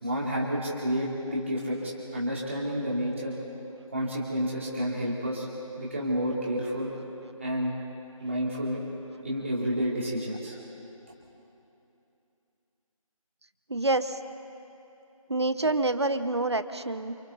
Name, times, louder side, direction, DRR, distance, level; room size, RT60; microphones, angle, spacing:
voice 1, 0.0-3.3 3.9-5.5 5.8-6.9 7.4-7.7 8.2-8.8 9.2-10.6, equal, 20° right, -5 dB, 3.4 m, -30 dB
voice 2, 13.7-14.2 15.3-17.1, right 2 dB, 50° right, 11 dB, 1.1 m, -27 dB
28.0 x 28.0 x 4.2 m, 2.8 s
figure-of-eight pair, 170°, 18 cm